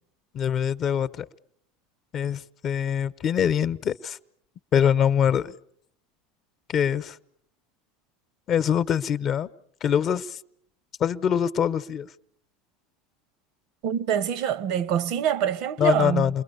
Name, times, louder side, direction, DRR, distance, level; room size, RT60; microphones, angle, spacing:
voice 1, 0.3-1.2 2.1-4.2 4.7-5.5 6.7-7.2 8.5-9.5 9.8-10.4 11.0-12.1 15.8-16.4, left 8 dB, 45° left, 0.9 m, -24 dB
voice 2, 13.8-16.3, right 9 dB, 65° right, 0.9 m, -25 dB
28.5 x 22.0 x 6.9 m
hypercardioid pair, 95°, 0 cm